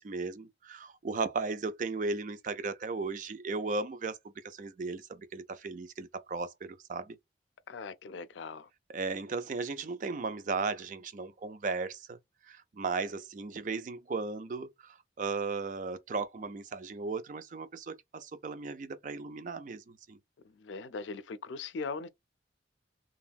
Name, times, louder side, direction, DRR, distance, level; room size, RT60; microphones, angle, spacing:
voice 1, 0.0-4.2 4.4-7.2 8.9-12.2 12.5-20.2, right 4 dB, 45° right, 0.4 m, -36 dB
voice 2, 7.7-8.7 20.4-22.1, left 4 dB, 85° left, 0.4 m, -40 dB
2.9 x 2.6 x 2.3 m
head